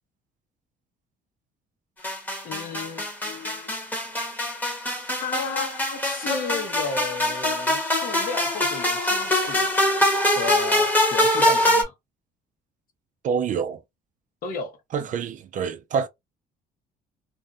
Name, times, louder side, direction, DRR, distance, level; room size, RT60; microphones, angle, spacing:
sound 1, 2.0-11.8, left 1 dB, 10° left, 1.1 m, -23 dB
voice 1, 2.4-3.7 5.2-9.7 10.4-11.9 14.4-14.8, left 5 dB, 60° left, 0.9 m, -34 dB
voice 2, 13.2-13.8 14.9-16.1, right 6 dB, 50° right, 0.5 m, -26 dB
2.5 x 2.2 x 2.5 m
cardioid pair, 110°, 17 cm